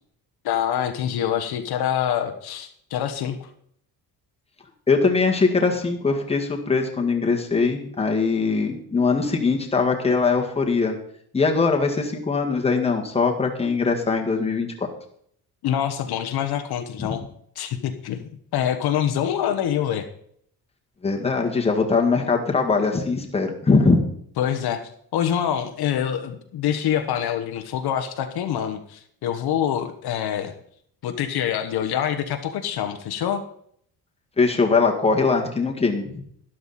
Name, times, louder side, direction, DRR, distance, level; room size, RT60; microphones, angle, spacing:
voice 1, 0.4-3.5 15.6-17.2 17.5-20.1 24.4-24.8 25.1-30.5 31.0-33.4, left 9 dB, 70° left, 7 dB, 1.3 m, -25 dB
voice 2, 4.9-11.0 11.3-14.9 17.0-17.2 21.0-24.0 34.4-36.2, left 4 dB, 15° left, 1 dB, 1.8 m, -21 dB
12.5 x 11.5 x 4.2 m, 0.65 s
cardioid pair, 155°, 40 cm